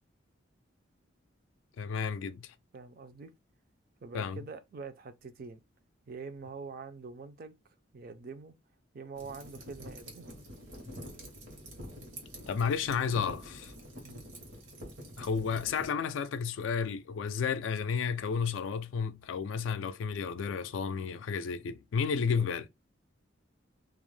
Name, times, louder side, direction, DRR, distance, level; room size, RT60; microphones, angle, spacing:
voice 1, 1.8-2.5 4.1-4.4 12.5-13.7 15.2-22.7, left 6 dB, 75° left, 0.3 m, -32 dB
voice 2, 2.7-3.3 4.0-5.6 6.1-7.6 7.9-8.5 8.9-10.3 14.0-14.3 22.3-22.5, right 4 dB, 50° right, 0.4 m, -45 dB
sound 1, 9.2-15.9, equal, 75° right, 1.0 m, -47 dB
2.4 x 2.1 x 3.1 m
head